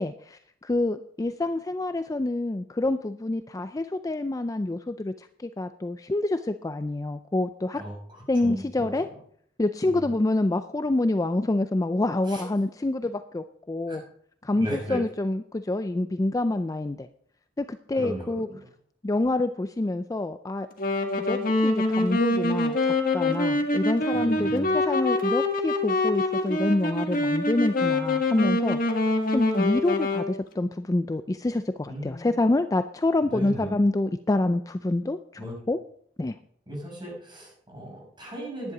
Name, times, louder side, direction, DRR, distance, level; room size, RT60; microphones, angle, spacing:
voice 1, 0.0-7.8 8.3-9.1 9.6-14.0 14.4-17.1 17.6-18.5 19.0-20.7 21.2-28.8 29.3-35.2 35.7-35.8 36.2-36.3, left 2 dB, 20° left, 10 dB, 0.4 m, -27 dB
voice 2, 7.7-8.9 9.8-10.0 12.3-12.4 13.9-14.0 14.6-15.0 17.9-18.6 24.1-24.8 31.9-32.4 33.3-33.7 35.4-35.5 36.7-38.7, right 1 dB, 25° right, -2 dB, 6.0 m, -36 dB
Wind instrument woodwind instrument, 20.8-30.3, left 2 dB, 50° left, 1.6 m, -25 dB
10.5 x 10.5 x 4.9 m, 0.63 s
head